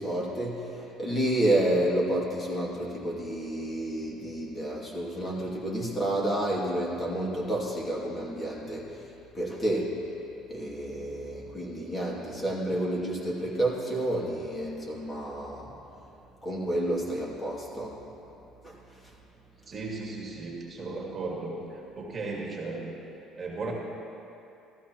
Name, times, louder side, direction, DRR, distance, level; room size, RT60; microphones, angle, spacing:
voice 1, 0.0-10.1 10.5-15.7 16.4-18.0 18.6-18.8 19.0-19.1, right 1 dB, 25° left, -4 dB, 2.4 m, -30 dB
voice 2, 19.7-22.9 23.4-23.7, right 3 dB, 30° right, -2 dB, 1.9 m, -36 dB
15.0 x 13.5 x 3.0 m, 2.8 s
cardioid pair, 115°, 0 cm